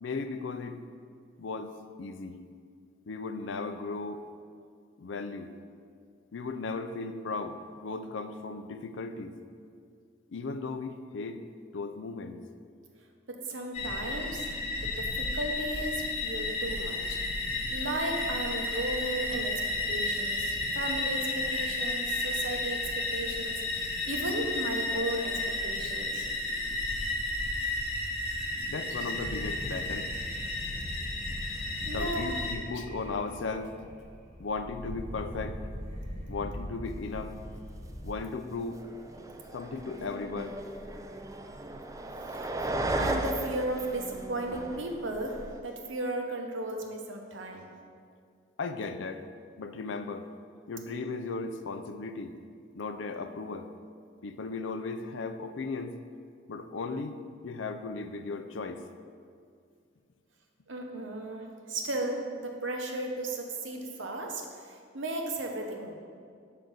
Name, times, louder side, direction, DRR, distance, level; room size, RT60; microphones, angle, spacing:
voice 1, 0.0-0.8 1.4-1.7 2.0-2.4 3.1-4.2 5.0-5.5 6.3-9.4 10.3-11.5 11.7-12.4 28.7-30.1 31.8-33.7 34.4-35.6 36.3-37.4 38.0-38.8 39.5-40.6 48.6-49.2 49.6-50.3 50.7-52.3 52.7-53.7 54.2-56.0 56.5-57.2 57.4-58.8, left 4 dB, 65° left, 9 dB, 0.5 m, -36 dB
voice 2, 13.3-14.5 14.8-17.2 17.7-26.3 31.4-32.3 42.3-42.5 43.0-47.7 60.7-66.0, right 1 dB, 70° right, 2 dB, 0.9 m, -35 dB
sound 1, 13.7-32.6, left 2 dB, 30° left, 1.0 m, -33 dB
sound 2, 29.2-38.2, equal, 35° right, 1.2 m, -41 dB
sound 3, 37.3-37.4 37.7-38.2 38.6-45.6, right 1 dB, 15° right, 0.4 m, -36 dB
5.7 x 5.1 x 6.3 m, 2.2 s
head